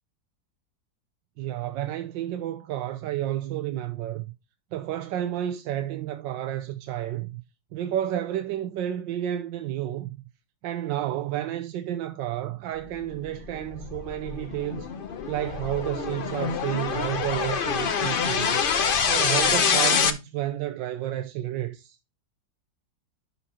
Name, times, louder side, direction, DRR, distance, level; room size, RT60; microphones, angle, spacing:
voice 1, 1.4-4.3 4.7-7.4 7.7-10.2 10.6-14.9 15.3-22.0, right 12 dB, 85° right, 1.3 m, -31 dB
sound 1, 13.1-20.1, left 6 dB, 60° left, 0.5 m, -26 dB
11.0 x 4.2 x 4.2 m
omnidirectional pair, 2.0 m